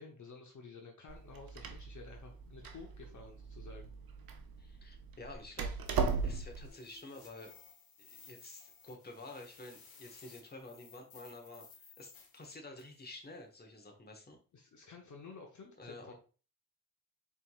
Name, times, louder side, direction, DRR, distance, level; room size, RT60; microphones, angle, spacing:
voice 1, 0.0-3.9 14.5-16.1, left 4 dB, 55° left, 1 dB, 0.8 m, -52 dB
Door, 1.1-6.7, right 5 dB, 80° right, 0.7 m, -38 dB
voice 2, 4.6-5.7 6.2-7.5 8.0-14.4 15.8-16.1, left 2 dB, 25° left, 3 dB, 1.2 m, -50 dB
sound 1, 5.8-13.0, left 5 dB, 80° left, 1.2 m, -58 dB
4.5 x 3.7 x 2.3 m, 0.37 s
cardioid pair, 70°, 35 cm